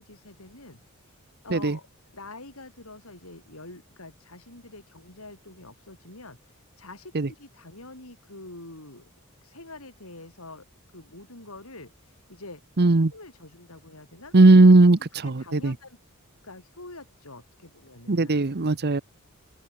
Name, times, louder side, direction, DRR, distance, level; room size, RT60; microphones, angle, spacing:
voice 1, 0.0-1.9 2.1-9.1 9.4-12.6 13.0-14.3 15.1-16.0 16.4-19.0, left 2 dB, 75° left, 7.6 m, -46 dB
voice 2, 12.8-13.1 14.3-15.7 18.1-19.0, right 2 dB, 50° right, 0.9 m, -17 dB
open air
head